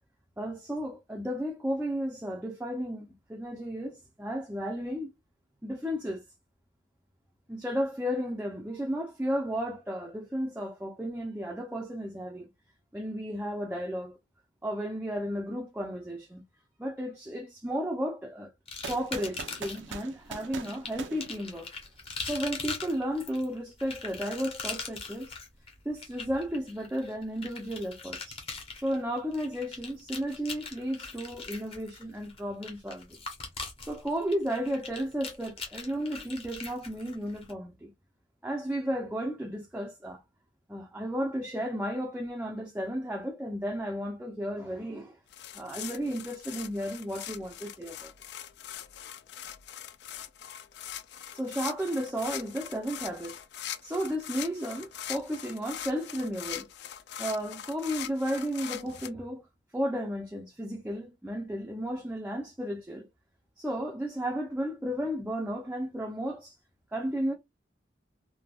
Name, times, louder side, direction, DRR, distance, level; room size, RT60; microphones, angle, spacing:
voice 1, 0.4-5.1 5.6-6.2 7.5-12.5 12.9-14.2 14.6-16.4 16.8-18.5 18.9-21.7 22.2-25.3 25.9-28.4 28.8-33.2 33.8-37.9 38.4-40.2 40.7-45.2 45.5-48.1 51.3-53.4 53.8-56.7 57.2-59.4 59.7-63.1 63.6-66.5 66.9-67.3, equal, 10° right, 0.4 m, -33 dB
sound 1, 18.7-19.9 20.6-37.5, left 4 dB, 30° left, 0.8 m, -41 dB
sound 2, 18.8-22.0, right 5 dB, 85° right, 0.5 m, -42 dB
sound 3, 45.3-59.1, left 11 dB, 65° left, 0.3 m, -42 dB
3.3 x 2.2 x 2.2 m
head